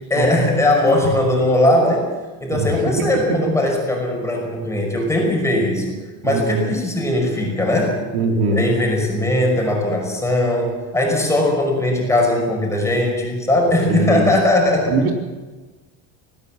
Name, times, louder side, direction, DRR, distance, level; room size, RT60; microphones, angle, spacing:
voice 1, 0.1-2.1 2.4-5.9 6.2-8.0 8.5-14.9, left 1 dB, 5° left, 0 dB, 5.6 m, -19 dB
voice 2, 2.6-2.9 3.6-3.7 6.2-6.7 8.1-8.7 13.9-14.3 14.9-15.1, right 3 dB, 75° right, 2 dB, 4.2 m, -21 dB
20.0 x 18.0 x 7.6 m, 1.2 s
cardioid pair, 170°, 39 cm